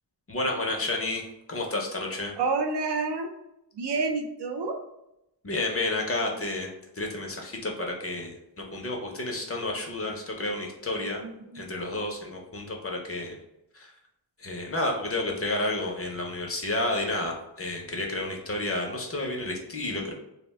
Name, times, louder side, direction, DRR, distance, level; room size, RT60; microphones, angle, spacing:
voice 1, 0.3-2.3 5.4-6.7 6.9-11.2 11.5-13.4 13.7-13.9 14.4-20.1, left 2 dB, 35° left, 1 dB, 0.5 m, -31 dB
voice 2, 2.4-3.3 3.7-4.8 11.2-11.6, right 4 dB, 75° right, 4 dB, 0.5 m, -29 dB
2.3 x 2.1 x 3.4 m, 0.85 s
wide cardioid pair, 75°, 41 cm